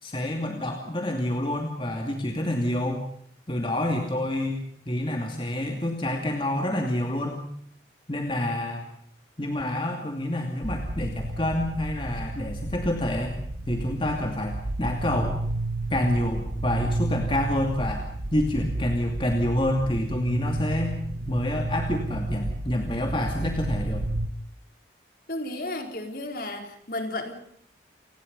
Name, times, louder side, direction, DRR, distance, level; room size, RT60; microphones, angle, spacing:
voice 1, 0.0-3.1 3.5-7.4 8.1-8.8 9.4-13.4 13.7-15.4 15.9-18.1 18.3-21.0 21.3-24.0, left 1 dB, 30° left, 2 dB, 2.6 m, -28 dB
sound 1, 10.6-24.3, right 2 dB, 75° right, 1.3 m, -32 dB
voice 2, 25.3-27.3, left 1 dB, 50° left, 4 dB, 4.4 m, -33 dB
29.0 x 20.0 x 5.5 m, 0.68 s
head